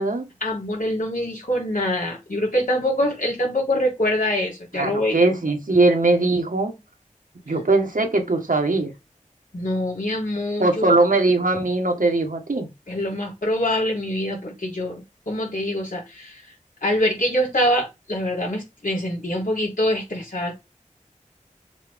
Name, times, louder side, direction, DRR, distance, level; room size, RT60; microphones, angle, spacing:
voice 1, 0.4-5.2 9.5-10.9 12.9-16.5 16.8-20.6, left 1 dB, 90° left, 3.8 m, -24 dB
voice 2, 4.8-6.8 7.5-8.9 10.6-12.7, right 2 dB, 90° right, 1.8 m, -20 dB
7.3 x 4.1 x 3.7 m
wide cardioid pair, 50°, 13 cm